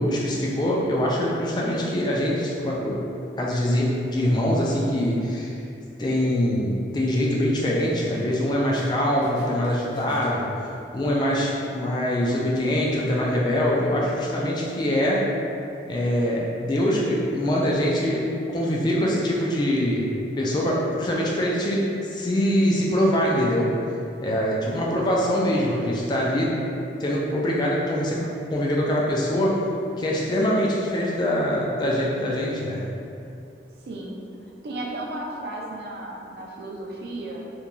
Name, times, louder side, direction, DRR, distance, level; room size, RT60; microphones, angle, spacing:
voice 1, 0.0-3.0 3.4-5.6 6.0-10.5 10.9-15.3 15.9-18.2 18.5-20.1 20.4-23.7 24.2-26.6 27.0-29.6 30.0-32.8, equal, 25° left, -4 dB, 0.3 m, -23 dB
sound 1, 8.1-9.0 9.2-11.0, equal, 75° left, 0.5 m, -43 dB
voice 2, 33.8-37.5, right 1 dB, 60° right, -2 dB, 0.4 m, -35 dB
3.0 x 2.5 x 2.2 m, 2.5 s
head